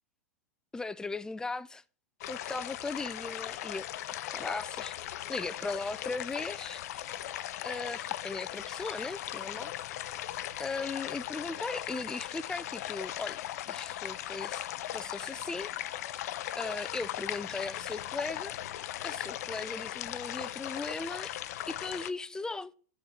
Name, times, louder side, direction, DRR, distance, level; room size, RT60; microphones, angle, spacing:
voice 1, 0.7-1.8 2.3-3.9 4.3-7.1 7.6-10.1 10.6-13.4 13.7-14.6 14.9-15.7 16.0-18.5 19.0-21.4 21.7-22.7, left 3 dB, 5° left, 0.4 m, -38 dB
sound 1, 2.2-22.1, left 13 dB, 65° left, 0.5 m, -38 dB
sound 2, 5.0-11.1, right 6 dB, 50° right, 1.5 m, -62 dB
9.0 x 4.3 x 6.3 m
hypercardioid pair, 110°, 9 cm